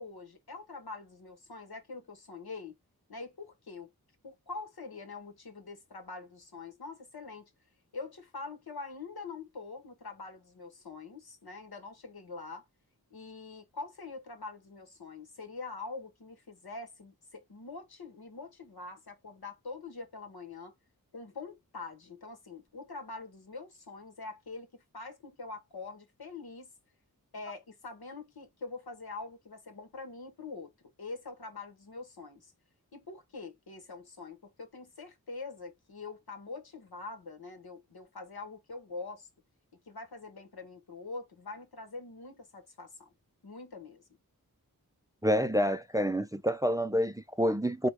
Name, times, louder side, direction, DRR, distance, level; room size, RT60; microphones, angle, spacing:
voice 1, 0.0-2.8 3.1-3.9 4.2-7.5 7.9-12.6 13.1-20.7 21.1-26.7 27.3-30.7 31.0-32.5 32.9-39.3 39.9-43.1 43.4-44.1, left 3 dB, 85° left, 1.3 m, -44 dB
voice 2, 45.2-47.9, equal, 10° right, 0.4 m, -28 dB
4.7 x 2.3 x 3.3 m
wide cardioid pair, 75°, 36 cm